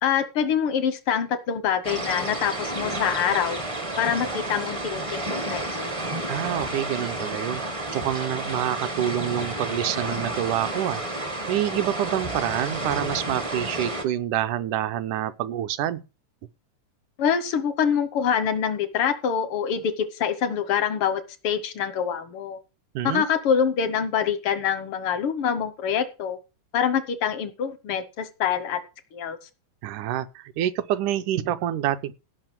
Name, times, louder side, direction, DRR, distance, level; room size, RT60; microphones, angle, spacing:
voice 1, 0.0-3.6 4.0-5.9 17.2-22.6 23.0-26.4 26.7-28.8 29.1-29.4, left 8 dB, 75° left, 1.2 m, -25 dB
sound 1, 1.8-14.0, right 1 dB, 55° right, 0.3 m, -31 dB
voice 2, 6.3-7.6 7.9-11.0 11.5-16.0 23.0-23.2 29.8-32.1, right 11 dB, 75° right, 2.2 m, -27 dB
17.0 x 5.7 x 6.0 m
omnidirectional pair, 3.8 m